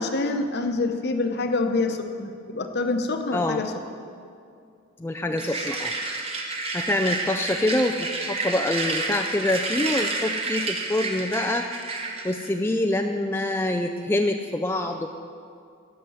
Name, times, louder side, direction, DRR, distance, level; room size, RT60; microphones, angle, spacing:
voice 1, 0.0-3.7 5.3-5.7, left 3 dB, 50° left, 6 dB, 0.9 m, -26 dB
voice 2, 3.3-3.6 5.0-5.9 6.7-11.7 12.2-15.1, left 1 dB, 10° left, 4 dB, 0.3 m, -25 dB
sound 1, 5.4-12.5, right 3 dB, 30° right, 1.1 m, -30 dB
12.5 x 5.9 x 9.3 m, 2.4 s
head